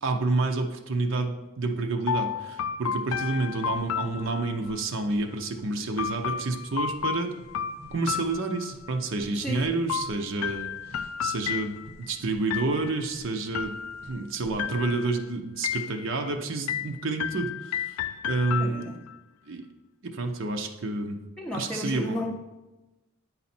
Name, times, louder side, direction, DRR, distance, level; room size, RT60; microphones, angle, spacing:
voice 1, 0.0-7.3 7.9-13.8 14.0-19.0 19.5-19.7 20.0-21.2 21.5-22.2, right 3 dB, 60° right, 4 dB, 0.7 m, -29 dB
sound 1, 2.1-4.8 6.0-9.0 9.9-12.1 12.5-13.1 13.5-14.2 14.6-15.2 15.6-16.3 16.7-19.2, left 8 dB, 75° left, 0.3 m, -32 dB
sound 2, 3.5-15.1, right 1 dB, 85° right, 1.0 m, -52 dB
voice 2, 9.3-9.6 18.6-19.0 21.4-22.3, left 1 dB, 5° left, -2 dB, 0.6 m, -33 dB
9.5 x 4.1 x 4.3 m, 1.0 s
head